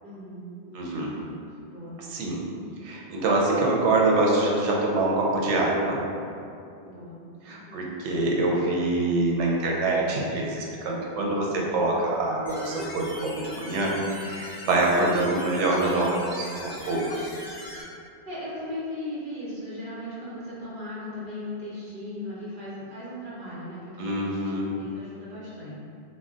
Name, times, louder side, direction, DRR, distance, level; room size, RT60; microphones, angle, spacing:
voice 1, 0.0-1.3 1.6-2.0 2.4-2.6 6.8-7.2 7.6-7.8 14.5-15.0 18.3-25.8, left 1 dB, 50° right, -9 dB, 1.0 m, -38 dB
voice 2, 0.7-1.1 2.1-2.4 2.8-6.0 7.4-13.9 14.2-17.3 24.0-24.7, right 2 dB, 90° right, -3 dB, 0.9 m, -25 dB
sound 1, 12.5-17.8, left 1 dB, 55° left, 0.7 m, -41 dB
2.3 x 2.1 x 3.6 m, 2.5 s
omnidirectional pair, 1.1 m